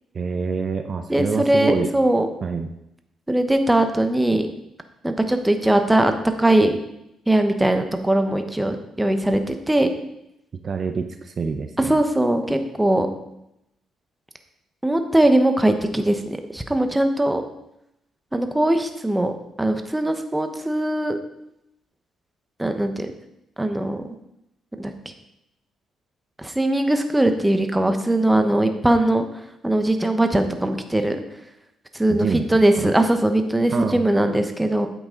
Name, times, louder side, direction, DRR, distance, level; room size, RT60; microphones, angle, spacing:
voice 1, 0.1-1.9 2.4-2.7 10.6-12.0 32.1-32.5 32.7-32.9 33.7-34.0, right 5 dB, 45° right, 7 dB, 0.7 m, -26 dB
voice 2, 1.1-2.3 3.3-4.5 5.0-6.1 6.4-6.7 7.3-9.9 11.8-13.1 14.8-17.4 18.3-19.3 19.6-21.2 22.6-23.1 23.6-24.0 24.8-24.9 26.4-29.3 29.6-31.2 31.9-34.9, right 1 dB, 10° right, 6 dB, 1.0 m, -20 dB
9.1 x 7.9 x 3.8 m, 0.82 s
cardioid pair, 90°, 0 cm